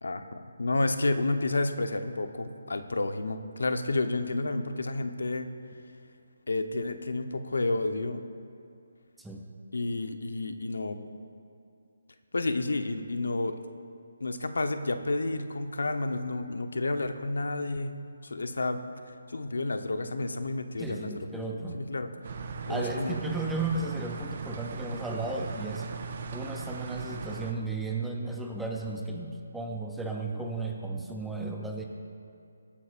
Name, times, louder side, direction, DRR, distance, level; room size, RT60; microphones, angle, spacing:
voice 1, 0.0-5.5 6.5-8.2 9.7-11.0 12.3-13.5 14.2-17.9 18.2-18.8 19.1-21.4 21.7-22.1 22.7-23.1, left 2 dB, 90° left, 8 dB, 0.9 m, -30 dB
voice 2, 20.8-21.8 22.7-25.9 26.3-31.8, right 3 dB, ahead, 0 dB, 0.6 m, -34 dB
sound 1, 22.2-27.5, right 5 dB, 40° right, 0.7 m, -38 dB
23.5 x 8.8 x 2.5 m, 2.5 s
hypercardioid pair, 170°, 0 cm